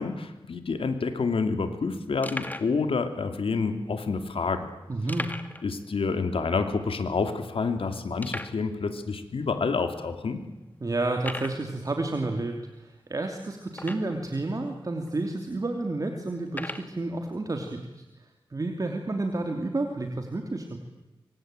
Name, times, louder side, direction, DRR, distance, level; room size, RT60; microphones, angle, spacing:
voice 1, 0.0-4.7 5.6-10.4, left 4 dB, 90° left, 8 dB, 2.9 m, -28 dB
sound 1, 0.8-0.9 1.0-1.2 1.7-1.8 2.2-2.8 3.5-3.6 5.1-5.7 6.0-6.1 6.5-6.6 7.2-7.3 8.2-8.6 9.4-9.5 10.1-10.2 11.2-11.6 13.7-14.3 15.1-15.2 16.5-16.9, left 1 dB, 20° left, 2.1 m, -37 dB
voice 2, 4.9-5.3 10.8-20.8, right 2 dB, 40° right, 4 dB, 2.8 m, -31 dB
25.5 x 25.0 x 9.1 m, 1.0 s
wide cardioid pair, 110°, 9 cm